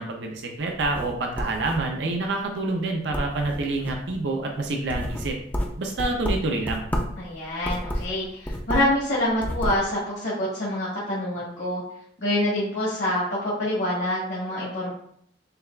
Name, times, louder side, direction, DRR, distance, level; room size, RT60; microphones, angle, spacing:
voice 1, 0.0-5.3 5.8-6.8, right 2 dB, 70° right, 2 dB, 0.5 m, -27 dB
sound 1, 0.6-2.1 2.6-2.8 3.1-4.1 4.6-7.2 7.6-9.0 9.3-9.8, equal, 10° left, 0.3 m, -30 dB
voice 2, 7.2-11.8 12.2-14.9, left 1 dB, 65° left, -7 dB, 1.2 m, -26 dB
6.5 x 2.4 x 2.2 m, 0.68 s
head